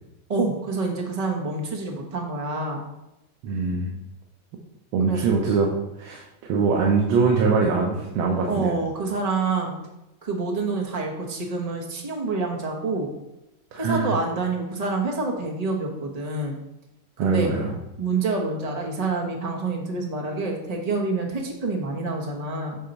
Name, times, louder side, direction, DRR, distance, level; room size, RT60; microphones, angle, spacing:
voice 1, 0.3-2.8 5.1-5.2 8.5-9.7 10.2-13.1 13.8-16.6 17.2-17.5 18.0-22.8, right 3 dB, 35° right, 0 dB, 0.6 m, -27 dB
voice 2, 3.4-3.9 4.9-5.7 6.0-8.7 13.7-14.1 17.2-17.7, right 4 dB, 90° right, -1 dB, 1.6 m, -22 dB
8.1 x 2.9 x 5.2 m, 0.91 s
omnidirectional pair, 2.2 m